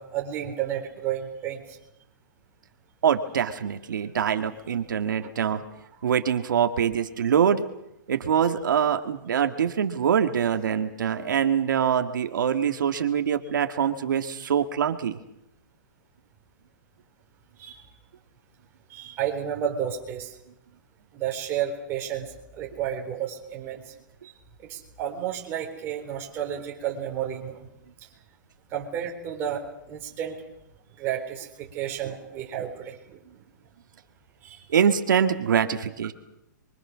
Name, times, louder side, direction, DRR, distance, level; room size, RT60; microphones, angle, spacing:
voice 1, 0.0-1.8 17.6-17.9 18.9-20.3 21.1-23.9 24.2-24.3 24.7-27.7 28.7-30.4 31.0-33.4 34.4-34.6, right 9 dB, 20° right, 0 dB, 4.0 m, -32 dB
voice 2, 3.0-5.6 6.0-7.6 8.1-15.2 34.7-36.1, right 8 dB, 85° right, 6 dB, 2.0 m, -24 dB
28.5 x 23.5 x 6.3 m, 0.82 s
hypercardioid pair, 170°, 10 cm